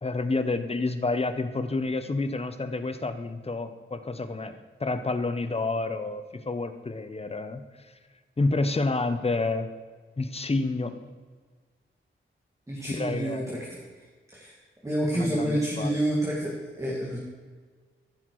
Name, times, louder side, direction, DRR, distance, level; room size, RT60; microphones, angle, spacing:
voice 1, 0.0-7.6 8.4-9.7 10.2-11.0 12.9-13.6 15.1-16.0, left 3 dB, 30° left, 9 dB, 0.8 m, -29 dB
voice 2, 12.7-13.7 14.3-14.5 14.8-17.2, right 1 dB, 15° right, -4 dB, 1.9 m, -28 dB
14.5 x 5.9 x 4.7 m, 1.5 s
wide cardioid pair, 115°, 21 cm